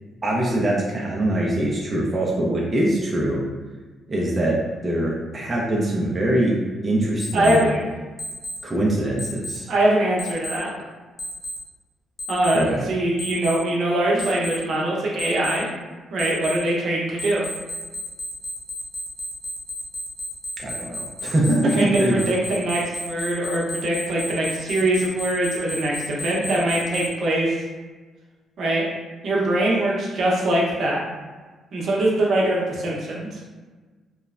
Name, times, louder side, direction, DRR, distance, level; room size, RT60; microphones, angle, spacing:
voice 1, 0.2-3.4 4.1-6.6 6.8-7.7 8.6-9.7 12.5-12.9 20.6-22.2, right 1 dB, 30° right, -3 dB, 0.5 m, -23 dB
Alarm, 7.2-7.6 8.2-8.6 9.2-9.6 10.2-10.6 11.2-11.6 12.2-12.6 13.2-13.6 14.2-14.6 15.2-15.6 16.2-16.6 17.2-27.1, left 1 dB, 30° left, 0.5 m, -32 dB
voice 2, 7.3-7.8 9.7-10.7 12.3-15.7 16.1-17.5 21.8-27.5 28.6-28.8 29.2-31.0 31.7-33.4, right 1 dB, 65° right, -3 dB, 0.7 m, -22 dB
3.0 x 2.0 x 2.4 m, 1.3 s
cardioid pair, 90°, 0 cm